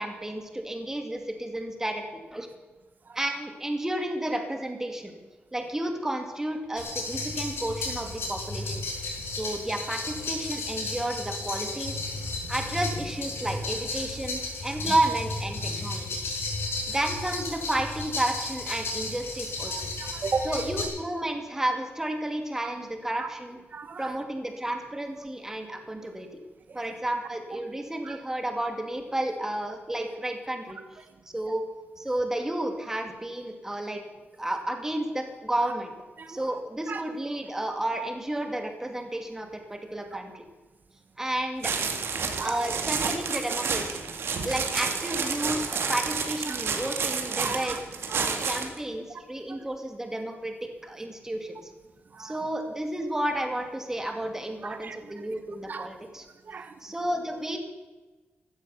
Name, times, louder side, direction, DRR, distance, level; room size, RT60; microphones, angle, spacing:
voice 1, 0.0-2.5 3.1-5.2 5.5-8.9 9.3-12.1 12.5-16.2 16.9-19.7 20.4-23.6 24.0-26.3 26.7-30.8 31.3-31.6 32.0-34.0 34.4-35.9 36.3-40.4 41.2-41.7 42.4-44.0 44.4-47.8 48.2-51.7 52.2-56.2 56.8-57.6, right 1 dB, 10° right, 4 dB, 2.4 m, -32 dB
sound 1, 6.8-20.8, left 2 dB, 70° left, 4.9 m, -33 dB
voice 2, 19.7-20.6 23.2-23.3 23.7-24.1 26.7-26.8 28.0-28.2 35.6-35.7 36.2-36.5 36.9-37.0 42.4-42.7 43.0-43.1 46.5-46.6 47.4-47.8 48.1-48.5 49.5-49.6 52.1-52.4 54.6-55.2 55.7-55.9 56.4-56.7, right 5 dB, 45° right, 9 dB, 1.1 m, -35 dB
sound 2, 41.6-48.8, right 5 dB, 70° right, 2.1 m, -30 dB
15.5 x 12.5 x 7.1 m, 1.2 s
wide cardioid pair, 145°, 4 cm